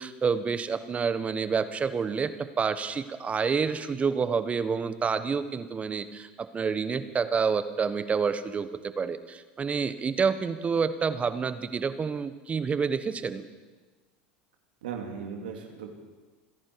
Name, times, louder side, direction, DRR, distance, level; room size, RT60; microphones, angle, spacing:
voice 1, 0.0-8.7 9.0-13.4, right 5 dB, 25° right, 11 dB, 1.2 m, -28 dB
voice 2, 14.8-15.9, right 6 dB, 85° right, 2 dB, 2.4 m, -37 dB
28.5 x 10.5 x 4.7 m, 1.3 s
hypercardioid pair, 95°, 5 cm